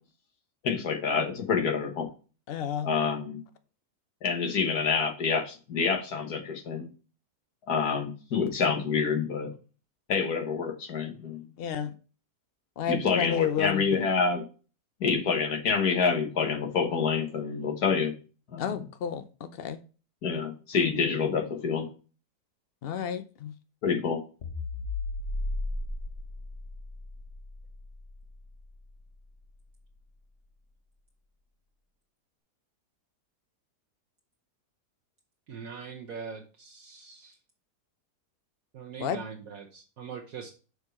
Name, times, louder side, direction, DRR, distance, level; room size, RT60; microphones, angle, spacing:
voice 1, 0.6-2.1 2.8-3.4 4.2-6.9 7.7-9.5 10.1-11.5 12.9-14.4 15.0-18.1 18.5-18.7 20.2-21.9 23.8-24.2, left 5 dB, 70° left, 1.8 m, -27 dB
voice 2, 2.5-2.9 11.6-11.9 12.8-14.1 18.6-19.8 22.8-23.5 39.0-39.2, left 8 dB, 90° left, 0.5 m, -31 dB
sound 1, 24.4-28.9, left 2 dB, 45° left, 1.1 m, -35 dB
voice 3, 35.5-37.3 38.7-40.5, right 6 dB, 60° right, 1.2 m, -42 dB
6.6 x 4.8 x 4.2 m
omnidirectional pair, 1.7 m